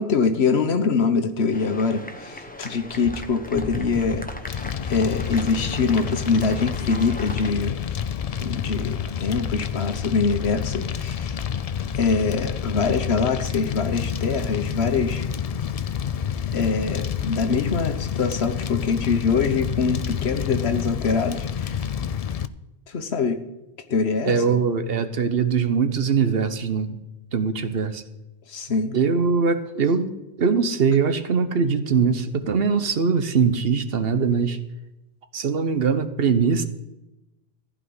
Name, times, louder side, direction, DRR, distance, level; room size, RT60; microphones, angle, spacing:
voice 1, 0.0-4.3 4.9-8.0 8.4-11.4 11.9-15.3 16.5-21.8 22.9-23.4 23.9-24.6 28.5-29.0, left 4 dB, 75° left, 9 dB, 1.3 m, -24 dB
sound 1, 1.5-7.5, left 1 dB, 10° left, 1.0 m, -37 dB
Fire, 4.5-22.5, left 8 dB, 55° left, 0.4 m, -28 dB
voice 2, 24.2-27.0 27.3-28.0 28.9-34.6 35.3-36.6, right 5 dB, 65° right, 10 dB, 1.1 m, -22 dB
15.0 x 5.1 x 9.5 m, 0.98 s
omnidirectional pair, 1.1 m